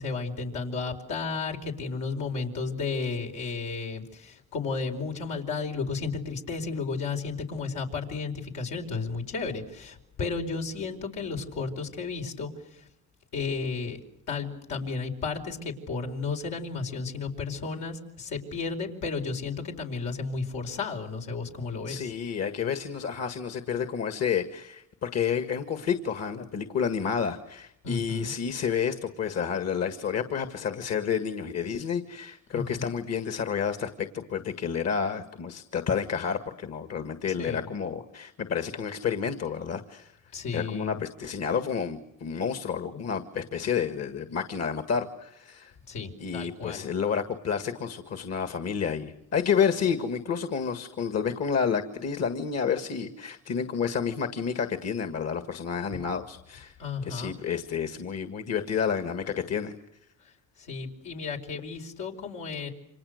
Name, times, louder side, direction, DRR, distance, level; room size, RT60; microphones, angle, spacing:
voice 1, 0.0-12.8 13.3-14.0 14.3-22.1 27.8-28.3 32.5-32.8 37.3-37.7 40.3-41.0 45.9-46.9 55.9-56.0 56.8-57.4 60.6-62.7, left 4 dB, 90° left, 1 dB, 4.8 m, -33 dB
voice 2, 21.9-40.1 40.5-45.7 46.2-56.7 57.0-59.8, left 7 dB, 55° left, 9 dB, 1.9 m, -30 dB
29.5 x 26.0 x 6.6 m, 0.79 s
cardioid pair, 90°, 30 cm